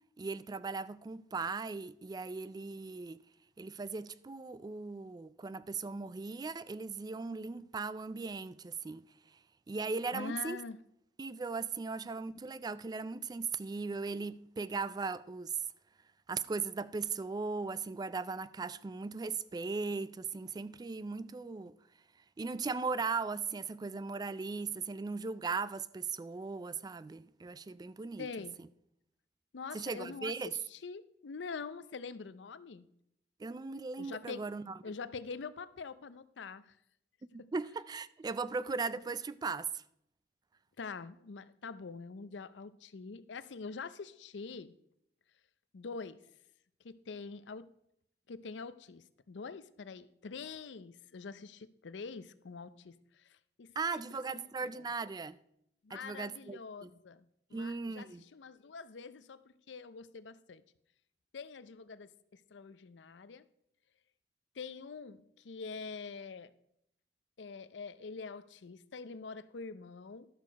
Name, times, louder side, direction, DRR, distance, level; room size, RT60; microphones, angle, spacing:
voice 1, 0.2-3.2 3.6-9.0 9.3-9.4 9.7-10.6 11.2-15.6 16.3-21.7 22.4-28.3 29.7-30.5 33.4-34.8 37.3-39.8 53.8-55.4 55.9-56.9 57.5-58.2, right 4 dB, 25° right, 0.3 m, -38 dB
voice 2, 10.1-10.8 28.2-28.6 29.5-32.9 34.0-34.5 34.8-36.7 40.8-44.7 45.7-46.2 46.8-47.7 48.3-54.5 55.8-59.4 59.7-60.6 61.3-63.4 64.6-66.5 67.4-70.3, left 4 dB, 90° left, 0.5 m, -45 dB
12.0 x 6.5 x 5.2 m
head